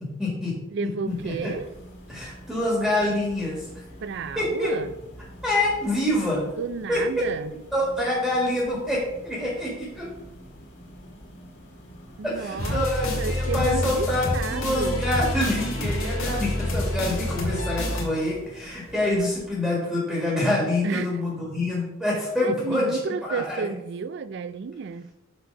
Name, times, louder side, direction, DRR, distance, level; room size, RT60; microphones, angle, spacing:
voice 1, 0.0-1.5 2.1-3.7 4.4-4.7 5.4-6.5 6.9-7.0 7.7-10.1 12.2-23.7, left 1 dB, ahead, 1.7 m, -26 dB
voice 2, 0.7-1.7 4.0-4.9 6.6-7.5 12.2-12.8 13.2-14.1 14.3-15.1 20.8-21.1 22.4-25.1, right 5 dB, 55° right, 0.4 m, -31 dB
sound 1, 1.0-19.5, equal, 55° left, 1.8 m, -46 dB
sound 2, 12.6-18.0, left 1 dB, 85° left, 2.0 m, -27 dB
6.6 x 4.5 x 5.2 m
head